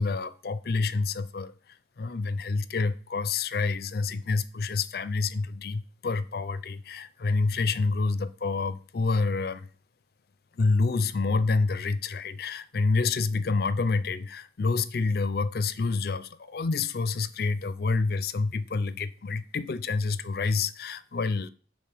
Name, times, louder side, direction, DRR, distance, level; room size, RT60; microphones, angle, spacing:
voice 1, 0.0-1.5 2.0-9.7 10.6-21.5, left 4 dB, 55° left, 0.5 m, -28 dB
7.5 x 3.7 x 6.0 m
head